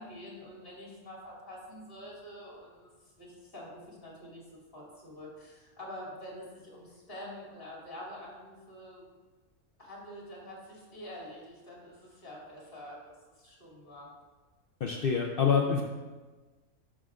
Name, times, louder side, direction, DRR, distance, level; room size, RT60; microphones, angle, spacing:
voice 1, 0.0-4.4 4.7-9.1 9.8-14.1, left 1 dB, 40° left, -5 dB, 2.7 m, -46 dB
voice 2, 14.8-15.8, left 6 dB, 65° left, 1 dB, 0.5 m, -26 dB
11.0 x 6.3 x 2.4 m, 1.3 s
omnidirectional pair, 1.6 m